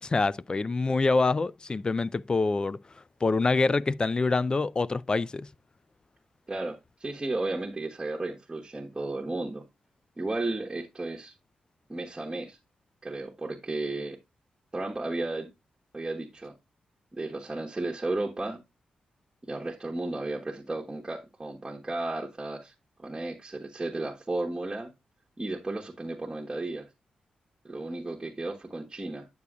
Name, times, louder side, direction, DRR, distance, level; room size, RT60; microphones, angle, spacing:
voice 1, 0.0-2.8 3.2-5.5, left 3 dB, 30° left, 0.3 m, -26 dB
voice 2, 6.5-9.6 10.2-11.3 11.9-12.6 13.0-14.2 14.7-15.5 15.9-16.5 17.1-18.6 19.4-22.7 23.0-24.9 25.4-26.9 27.6-29.3, right 2 dB, 20° right, 1.2 m, -34 dB
9.4 x 6.9 x 2.3 m
cardioid pair, 75°, 3 cm